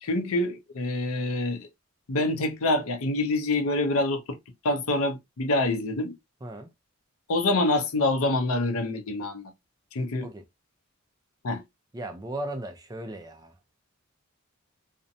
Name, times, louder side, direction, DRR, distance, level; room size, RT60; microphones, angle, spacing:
voice 1, 0.0-1.7 2.1-4.4 4.6-6.1 7.3-9.5 9.9-10.3 11.4-11.6, left 2 dB, 85° left, 0.6 m, -26 dB
voice 2, 11.9-13.5, right 1 dB, 20° right, 0.4 m, -36 dB
2.5 x 2.1 x 2.6 m
head